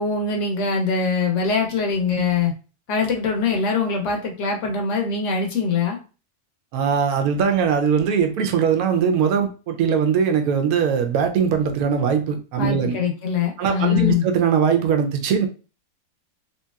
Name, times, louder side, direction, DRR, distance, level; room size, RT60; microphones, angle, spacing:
voice 1, 0.0-2.5 2.9-6.0 12.6-14.3, left 5 dB, 65° left, 2 dB, 0.8 m, -23 dB
voice 2, 6.7-13.0 13.6-15.5, right 7 dB, 80° right, 5 dB, 1.1 m, -20 dB
3.0 x 2.8 x 2.3 m, 0.34 s
omnidirectional pair, 1.6 m